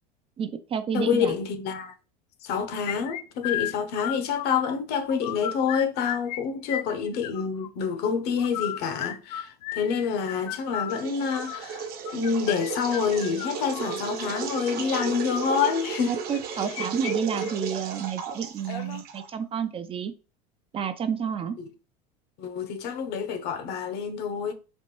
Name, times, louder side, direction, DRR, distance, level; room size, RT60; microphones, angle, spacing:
voice 1, 0.4-1.4 16.1-20.1 20.7-21.6, right 7 dB, 30° right, 0.4 m, -30 dB
voice 2, 0.9-1.9 2.4-16.2 22.4-24.5, left 6 dB, 55° left, 0.8 m, -27 dB
sound 1, 2.9-4.8 5.1-6.4 6.6-7.7 8.4-14.0 14.8-15.1 16.3-17.1 17.4-17.5 17.9-18.0 18.6-19.0, left 12 dB, 85° left, 0.4 m, -34 dB
sound 2, 10.9-19.4, right 6 dB, 50° right, 0.8 m, -34 dB
4.3 x 2.5 x 3.0 m
supercardioid pair, 105°, 20 cm